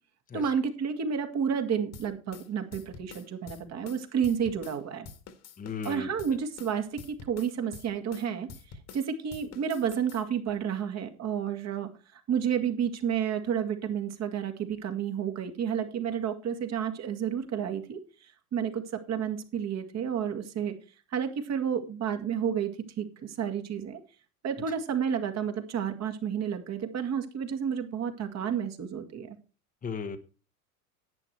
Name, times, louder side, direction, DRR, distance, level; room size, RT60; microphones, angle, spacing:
voice 1, 0.3-5.1 5.8-20.7 21.1-22.7 23.0-24.0 24.4-29.4, right 8 dB, 40° right, 2.2 m, -31 dB
sound 1, 1.9-4.8 5.1-9.1 9.3-10.2, left 5 dB, 35° left, 1.8 m, -47 dB
voice 2, 5.6-6.2 29.8-30.2, left 5 dB, 20° left, 1.2 m, -36 dB
11.0 x 8.8 x 4.6 m
hypercardioid pair, 90°, 42 cm